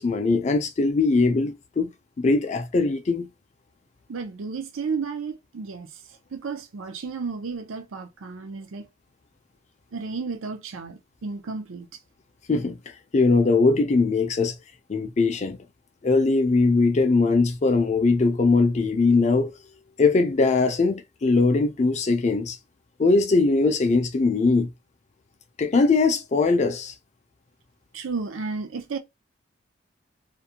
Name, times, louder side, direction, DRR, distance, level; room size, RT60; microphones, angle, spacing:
voice 1, 0.0-1.9 2.2-3.3 12.5-12.8 13.1-14.5 14.9-15.6 16.0-19.5 20.0-22.6 23.0-24.7 25.6-26.9, left 3 dB, 35° left, 0.4 m, -21 dB
voice 2, 4.1-5.9 6.3-8.9 9.9-11.9 27.9-29.0, right 4 dB, 85° right, 0.5 m, -32 dB
2.5 x 2.1 x 2.8 m
head